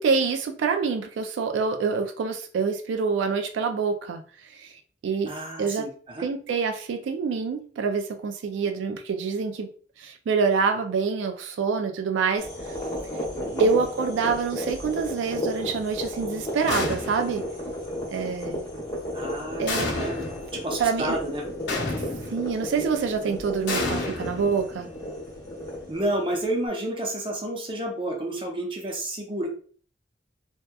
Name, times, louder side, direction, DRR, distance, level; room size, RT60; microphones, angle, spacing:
voice 1, 0.0-4.2 4.5-4.7 5.0-5.3 5.6-5.9 6.2-9.7 10.0-12.5 13.6-17.5 18.1-18.6 19.6-19.9 20.8-21.2 22.3-24.9, right 5 dB, 90° right, 7 dB, 0.3 m, -26 dB
voice 2, 5.2-6.2 13.3-13.7 19.1-19.6 19.9-20.2 20.5-21.4 25.9-29.5, right 1 dB, 30° right, 1 dB, 0.6 m, -30 dB
sound 1, 12.4-26.6, equal, 20° left, 0.9 m, -34 dB
sound 2, 16.7-17.4 19.7-20.5 21.7-22.5 23.7-24.9, left 2 dB, 75° left, 0.7 m, -30 dB
2.7 x 2.2 x 2.2 m, 0.43 s
head